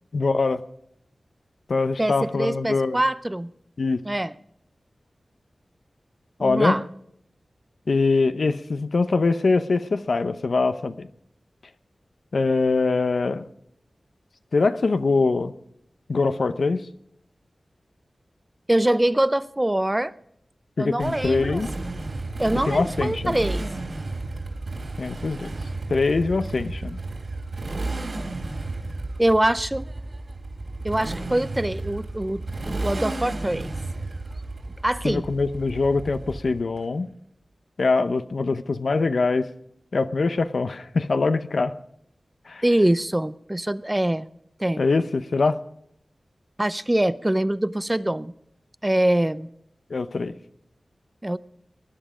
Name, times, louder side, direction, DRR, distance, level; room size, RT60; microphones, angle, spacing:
voice 1, 0.1-0.6 1.7-3.0 3.8-4.0 6.4-6.8 7.9-11.1 12.3-13.4 14.5-15.5 16.1-16.8 20.8-21.7 22.6-23.4 25.0-25.6 25.9-27.0 35.0-37.1 37.8-39.5 39.9-41.7 42.5-42.6 44.8-45.6 49.9-50.3, left 3 dB, 70° left, 11 dB, 0.7 m, -23 dB
voice 2, 2.0-3.5 4.0-4.3 6.4-6.8 18.7-20.1 20.8-21.6 22.4-23.7 29.2-29.9 30.8-33.7 34.8-35.2 42.6-44.3 44.6-44.8 46.6-48.3 48.8-49.5 51.2-51.4, right 1 dB, 20° right, 15 dB, 0.6 m, -24 dB
Motorcycle, 21.0-36.8, right 2 dB, 60° right, 3.4 m, -33 dB
20.0 x 10.5 x 5.0 m, 0.72 s
wide cardioid pair, 65°, 0 cm